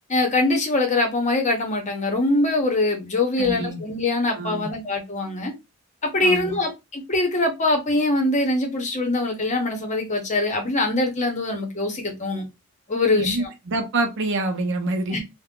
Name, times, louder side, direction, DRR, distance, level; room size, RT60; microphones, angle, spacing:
voice 1, 0.1-5.5 6.0-12.4 12.9-13.5 15.1-15.2, left 2 dB, 30° left, 0.8 m, -23 dB
voice 2, 3.4-3.8 4.3-4.7 6.2-6.6 13.1-15.2, right 2 dB, 55° right, 0.6 m, -26 dB
2.5 x 2.1 x 3.6 m
head